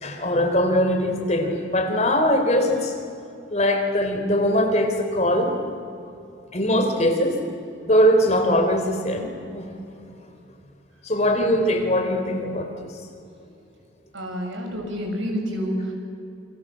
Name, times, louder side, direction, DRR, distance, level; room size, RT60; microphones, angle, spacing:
voice 1, 0.0-2.9 3.5-5.5 6.5-7.4 7.8-9.7 11.0-12.7, equal, 35° left, 4 dB, 3.7 m, -21 dB
voice 2, 14.1-15.9, equal, 90° right, 1 dB, 6.9 m, -28 dB
28.0 x 25.5 x 7.6 m, 2.6 s
head